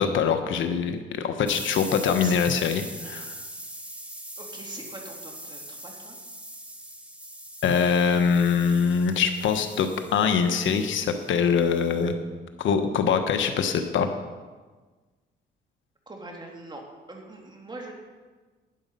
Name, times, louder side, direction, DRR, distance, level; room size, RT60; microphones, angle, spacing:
voice 1, 0.0-3.3 7.6-12.1 12.6-14.1, left 6 dB, 75° left, 7 dB, 1.2 m, -23 dB
sound 1, 1.5-12.1, right 1 dB, 5° right, 1.2 m, -42 dB
voice 2, 4.4-6.2 16.1-17.9, right 2 dB, 20° right, 0 dB, 2.8 m, -42 dB
12.0 x 10.5 x 5.4 m, 1.3 s
cardioid pair, 90°, 20 cm